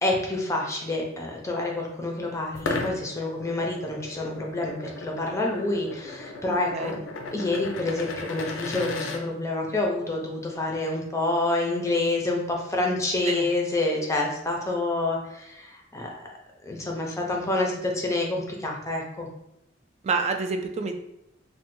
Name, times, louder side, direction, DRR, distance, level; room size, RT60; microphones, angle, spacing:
voice 1, 0.0-7.0 7.3-16.1 16.6-19.3, left 2 dB, 15° left, 0 dB, 0.5 m, -28 dB
sound 1, 2.5-9.2, left 3 dB, 70° left, 0.4 m, -35 dB
voice 2, 20.0-20.9, right 4 dB, 35° right, 6 dB, 0.3 m, -27 dB
3.1 x 2.2 x 3.0 m, 0.82 s
head